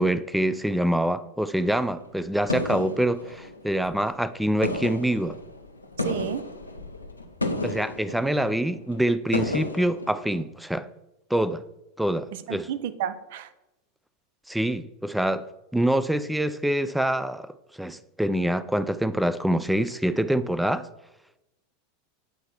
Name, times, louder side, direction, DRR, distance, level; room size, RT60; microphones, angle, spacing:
voice 1, 0.0-5.4 7.6-10.9 11.3-11.6 12.0-12.7 14.5-20.9, right 1 dB, 5° right, 0.4 m, -25 dB
sound 1, 1.6-4.3 4.5-10.4, left 2 dB, 85° left, 0.6 m, -33 dB
voice 2, 6.0-6.4 12.5-13.5, right 9 dB, 60° right, 0.5 m, -31 dB
8.3 x 4.4 x 4.4 m
figure-of-eight pair, 85°, 0 cm